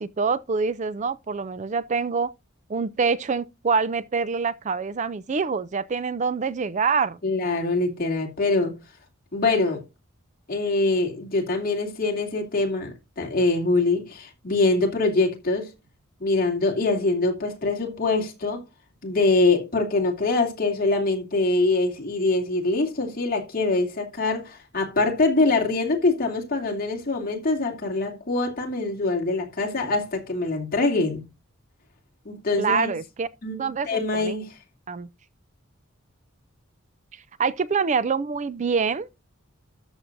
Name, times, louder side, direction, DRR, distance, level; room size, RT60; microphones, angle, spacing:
voice 1, 0.0-2.3 2.7-7.2 32.6-33.3 33.6-34.4 34.9-35.1 37.4-39.1, right 5 dB, 35° right, 0.4 m, -25 dB
voice 2, 7.2-8.8 9.3-9.8 10.5-15.7 16.2-18.6 19.0-31.3 32.2-32.9 33.4-34.5, left 3 dB, 45° left, 2.7 m, -24 dB
13.0 x 7.3 x 2.6 m
head